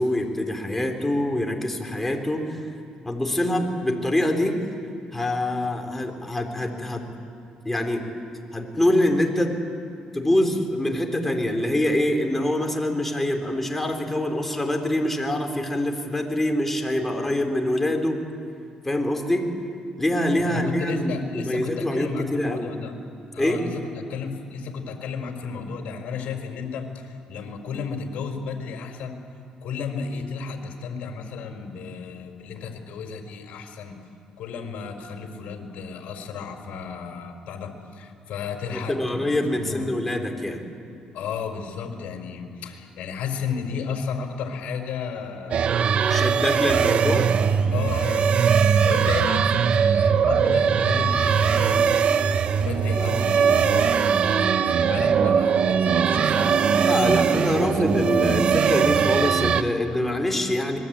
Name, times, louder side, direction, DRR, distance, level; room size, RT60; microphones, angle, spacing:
voice 1, 0.0-2.4 3.0-4.6 5.1-7.0 7.6-8.0 8.5-9.5 10.1-18.2 18.8-19.5 20.0-22.7 23.4-23.6 38.7-40.6 46.1-47.3 56.7-60.8, left 1 dB, 10° left, 3 dB, 4.0 m, -25 dB
voice 2, 20.4-22.9 23.3-29.1 29.6-34.0 34.4-40.0 41.1-45.8 46.4-47.1 47.7-52.2 52.6-57.2 57.6-58.0, left 5 dB, 75° left, 4 dB, 4.5 m, -33 dB
sound 1, 45.5-59.6, right 7 dB, 55° right, 1.2 m, -20 dB
25.5 x 22.0 x 8.9 m, 2.4 s
cardioid pair, 95°, 2 cm